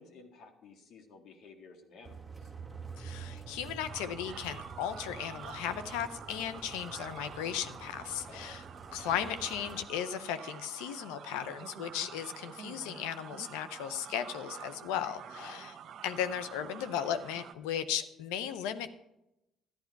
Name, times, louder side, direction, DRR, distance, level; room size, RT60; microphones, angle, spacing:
voice 1, 0.0-2.5 8.3-8.6 15.3-15.7, left 4 dB, 70° left, 4 dB, 1.9 m, -53 dB
sound 1, 2.0-9.8, right 4 dB, 20° right, 1.5 m, -47 dB
voice 2, 3.0-8.6 8.9-15.7 16.0-18.9, left 9 dB, 90° left, 11 dB, 0.7 m, -36 dB
sound 2, 3.9-17.5, right 8 dB, 65° right, 0.9 m, -48 dB
12.0 x 10.5 x 4.7 m, 0.88 s
supercardioid pair, 70°, 0 cm